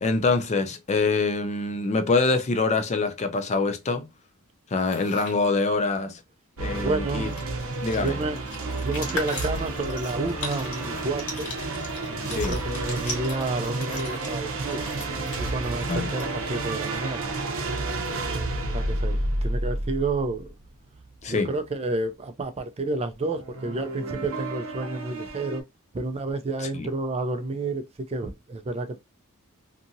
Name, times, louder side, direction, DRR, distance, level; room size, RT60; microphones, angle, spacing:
voice 1, 0.0-4.1 4.7-6.2 6.6-7.3 7.8-8.2 12.3-12.6 15.9-16.1 21.2-21.5 26.6-26.9, left 3 dB, 30° left, 0.4 m, -25 dB
sound 1, 4.7-5.4 6.8-6.9 7.1-16.7, left 3 dB, 75° left, 1.4 m, -39 dB
sound 2, 6.6-21.5 23.3-25.6, right 2 dB, 65° right, 0.7 m, -31 dB
voice 2, 6.8-7.3 8.0-8.4 8.8-11.5 12.1-14.9 15.4-17.3 18.7-20.5 21.3-25.6 25.9-29.0, right 2 dB, 30° right, 0.4 m, -30 dB
2.7 x 2.5 x 2.6 m
head